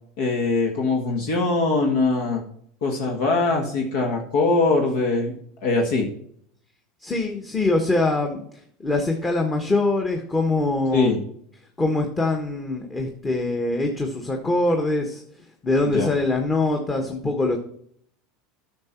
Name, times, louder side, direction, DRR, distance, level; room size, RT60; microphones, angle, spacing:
voice 1, 0.2-2.4 2.8-5.3 5.6-6.1 10.9-11.2 15.9-16.1, left 3 dB, 70° left, 2 dB, 1.6 m, -22 dB
voice 2, 7.0-8.4 8.8-11.2 11.8-15.2 15.6-17.6, left 2 dB, 20° left, 3 dB, 1.3 m, -23 dB
9.5 x 6.0 x 4.4 m, 0.66 s
hypercardioid pair, 100°, 0 cm